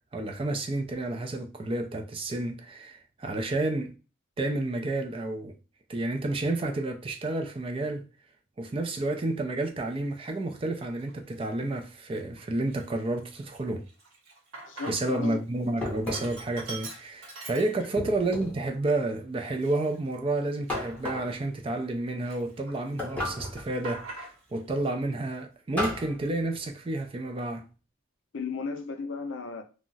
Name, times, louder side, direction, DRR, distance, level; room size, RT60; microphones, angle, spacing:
voice 1, 0.1-3.9 4.4-5.6 5.9-8.1 8.6-13.9 14.9-27.7, right 2 dB, 25° right, 0.3 m, -30 dB
Sink (filling or washing), 10.0-10.2 10.8-11.4 11.8-11.9 12.2-15.3 15.6-18.2 18.6-18.7 19.4-21.9 22.2-23.0 23.3-24.6, right 3 dB, 90° right, 1.0 m, -44 dB
voice 2, 14.7-15.4 28.3-29.6, left 4 dB, 60° left, 0.5 m, -34 dB
sound 1, 15.8-16.5 18.0-18.7 20.7-21.4 23.0-23.7 25.8-26.2, left 1 dB, 5° left, 0.6 m, -34 dB
2.3 x 2.0 x 3.8 m
head